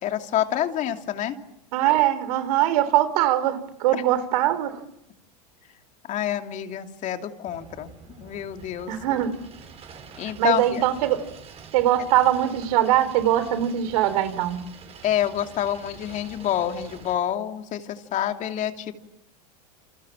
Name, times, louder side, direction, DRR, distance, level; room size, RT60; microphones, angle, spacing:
voice 1, 0.0-1.4 3.9-4.0 6.0-8.9 10.2-10.8 15.0-18.9, left 11 dB, 40° left, 6 dB, 2.7 m, -27 dB
voice 2, 1.7-4.8 8.9-9.3 10.4-11.2 11.7-14.6, right 12 dB, 70° right, 13 dB, 3.7 m, -22 dB
sound 1, 7.5-17.1, right 6 dB, 30° right, 6.6 m, -46 dB
29.0 x 27.5 x 7.5 m, 0.80 s
supercardioid pair, 120°, 20 cm